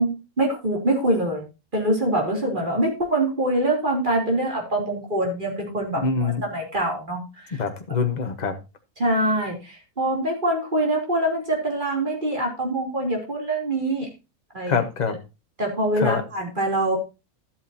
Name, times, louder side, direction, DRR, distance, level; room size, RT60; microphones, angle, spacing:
voice 1, 0.0-1.4 1.7-7.6 9.0-14.1 14.5-14.8 15.6-17.0, right 1 dB, 30° right, 0 dB, 3.4 m, -24 dB
voice 2, 5.9-6.4 7.6-8.6 14.7-15.2 16.0-16.2, left 5 dB, 30° left, 6 dB, 1.3 m, -24 dB
12.5 x 8.7 x 2.8 m, 0.27 s
omnidirectional pair, 1.6 m